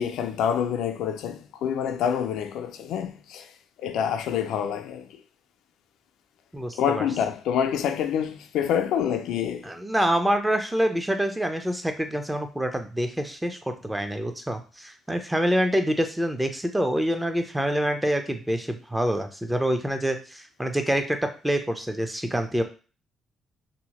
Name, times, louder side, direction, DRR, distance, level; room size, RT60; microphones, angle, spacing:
voice 1, 0.0-3.5 3.8-5.2 6.7-9.7, left 8 dB, 85° left, 0.3 m, -27 dB
voice 2, 6.5-7.1 9.6-22.6, equal, 10° right, 0.5 m, -26 dB
2.8 x 2.1 x 2.9 m
cardioid pair, 90°, 0 cm